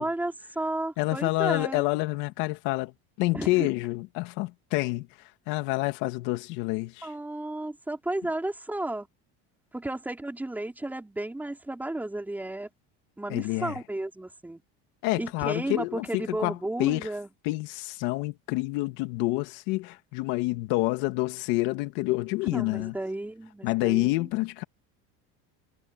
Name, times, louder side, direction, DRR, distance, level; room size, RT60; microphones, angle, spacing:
voice 1, 0.0-1.8 3.3-3.7 7.0-9.1 9.7-12.7 13.2-14.6 15.2-17.3 22.5-24.3, right 1 dB, 5° right, 4.7 m, -33 dB
voice 2, 1.0-2.9 3.2-5.1 5.5-7.1 13.3-13.8 15.0-17.1 17.4-23.0 23.6-24.6, left 21 dB, 65° left, 2.6 m, -28 dB
cardioid pair, 160°, 33 cm